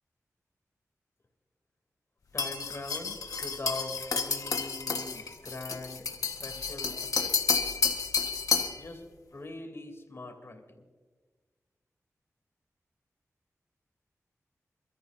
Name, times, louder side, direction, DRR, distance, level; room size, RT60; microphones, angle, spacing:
voice 1, 2.3-7.6 8.7-9.0 9.3-10.8, left 2 dB, 50° left, 3 dB, 3.0 m, -42 dB
sound 1, 2.4-8.8, left 5 dB, 90° left, 1.4 m, -30 dB
28.0 x 13.5 x 2.7 m, 1.4 s
wide cardioid pair, 65°, 6 cm